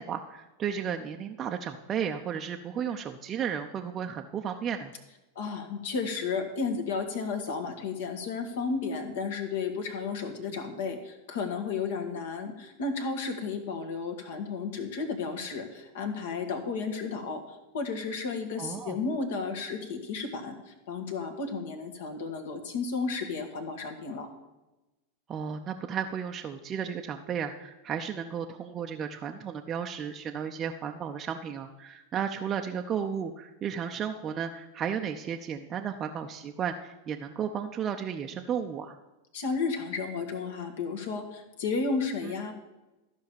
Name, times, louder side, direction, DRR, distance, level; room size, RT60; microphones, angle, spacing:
voice 1, 0.0-4.9 10.4-10.5 18.6-19.0 25.3-39.0, right 7 dB, 25° right, 4 dB, 0.6 m, -34 dB
voice 2, 5.3-24.3 39.3-42.5, left 4 dB, 55° left, 5 dB, 1.6 m, -33 dB
13.5 x 5.6 x 7.0 m, 1.1 s
figure-of-eight pair, 90°, 0 cm